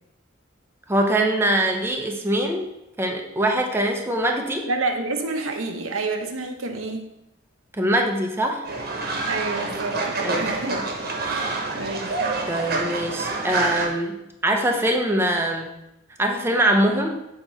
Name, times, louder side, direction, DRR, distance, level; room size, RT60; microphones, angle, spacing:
voice 1, 0.9-2.7 3.0-4.7 7.8-8.7 10.2-10.8 11.2-11.4 12.5-15.7 16.2-17.1, right 1 dB, 10° right, 2 dB, 0.6 m, -23 dB
voice 2, 4.7-7.1 9.3-10.8 11.3-12.1, right 3 dB, 90° right, 4 dB, 0.8 m, -29 dB
Fowl, 8.7-13.9, right 3 dB, 50° right, 1.0 m, -27 dB
7.1 x 2.9 x 5.5 m, 0.89 s
head